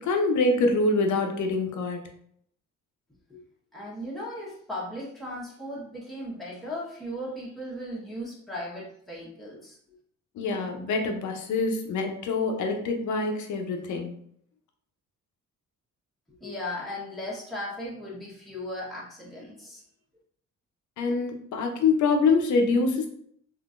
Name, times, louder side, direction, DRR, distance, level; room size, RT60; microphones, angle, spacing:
voice 1, 0.0-2.0 10.4-14.1 21.0-23.1, left 3 dB, 75° left, 4 dB, 0.7 m, -25 dB
voice 2, 3.7-9.8 16.4-19.8, left 1 dB, ahead, -6 dB, 1.1 m, -37 dB
3.7 x 2.6 x 2.5 m, 0.65 s
cardioid pair, 90°, 30 cm